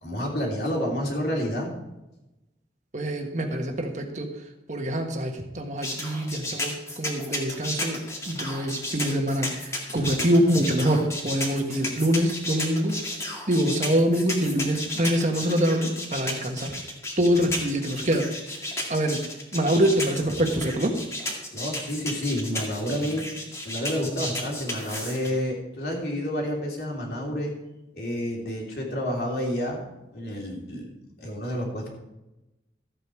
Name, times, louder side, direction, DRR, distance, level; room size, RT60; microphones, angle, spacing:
voice 1, 0.0-1.7 21.5-23.3 23.6-27.5 27.9-29.9 30.1-30.9 31.2-31.9, equal, 60° left, -1 dB, 3.3 m, -29 dB
voice 2, 2.9-4.3 4.7-13.0 13.5-16.8 17.2-18.3 18.9-19.2 19.5-20.9, equal, 40° right, 4 dB, 1.5 m, -25 dB
sound 1, 5.8-25.3, left 1 dB, 15° left, 2.1 m, -33 dB
14.0 x 8.6 x 4.7 m, 0.95 s
head